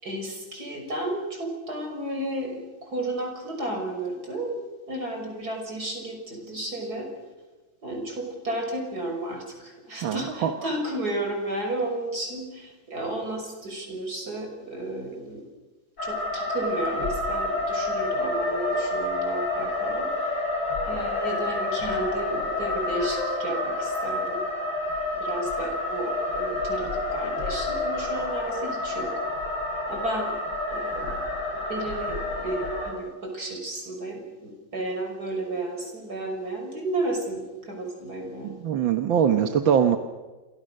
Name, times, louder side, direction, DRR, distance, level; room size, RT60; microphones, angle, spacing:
voice 1, 0.0-7.1 7.8-15.4 16.0-20.4 20.8-24.4 25.2-29.1 29.9-30.3 30.7-31.2 31.7-38.6, right 1 dB, 55° right, 3 dB, 6.5 m, -33 dB
voice 2, 10.0-10.5 38.4-40.0, right 8 dB, 90° right, 7 dB, 1.9 m, -22 dB
sound 1, 16.0-32.9, left 2 dB, 60° left, 6.4 m, -29 dB
29.0 x 26.0 x 6.6 m, 1.2 s
omnidirectional pair, 2.0 m